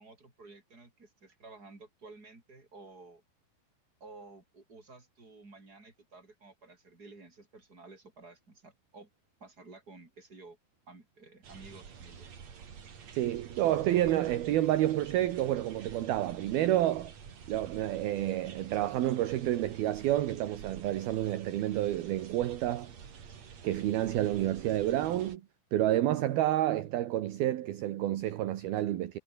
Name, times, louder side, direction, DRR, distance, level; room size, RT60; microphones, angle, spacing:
voice 1, 0.0-3.2 4.0-9.1 9.4-10.6 10.9-12.3, right 3 dB, 20° right, 5.9 m, -53 dB
sound 1, 11.4-25.4, right 7 dB, 40° right, 3.4 m, -49 dB
voice 2, 13.2-17.1 17.5-22.9 23.6-25.4 25.7-29.2, right 13 dB, 65° right, 3.0 m, -29 dB
omnidirectional pair, 5.2 m